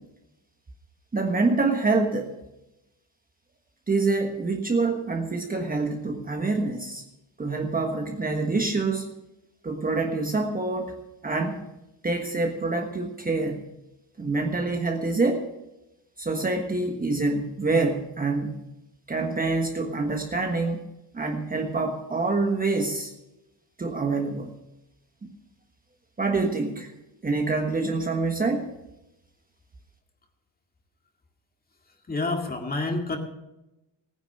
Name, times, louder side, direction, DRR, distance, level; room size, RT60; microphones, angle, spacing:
voice 1, 1.1-2.3 3.9-7.0 7.4-9.1 9.6-10.9 11.2-11.6 12.0-13.6 14.2-15.4 16.2-18.6 19.1-20.9 21.1-23.1 23.8-24.5 25.2-25.3 26.2-26.9 27.2-28.7, right 3 dB, 20° right, 3 dB, 1.4 m, -26 dB
voice 2, 32.1-33.2, left 2 dB, 20° left, 3 dB, 2.2 m, -28 dB
15.0 x 9.8 x 6.6 m, 0.94 s
cardioid pair, 120°, 47 cm